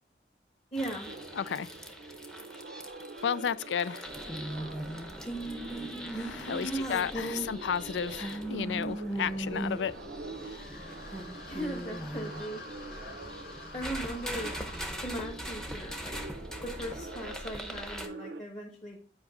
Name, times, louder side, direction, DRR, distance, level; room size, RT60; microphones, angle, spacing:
voice 1, 0.7-1.1 6.6-7.5 11.4-12.6 13.7-14.6 15.0-16.2 16.6-19.0, right 1 dB, 35° left, 1.4 m, -38 dB
sound 1, 0.8-18.1, right 1 dB, 5° left, 0.7 m, -40 dB
sound 2, 1.0-18.4, right 3 dB, 65° right, 0.6 m, -46 dB
voice 2, 1.4-1.7 3.2-4.1 6.1-9.9, left 7 dB, 90° left, 0.4 m, -32 dB
sound 3, 10.4-15.0, left 3 dB, 55° left, 1.1 m, -49 dB
8.7 x 5.1 x 3.8 m
head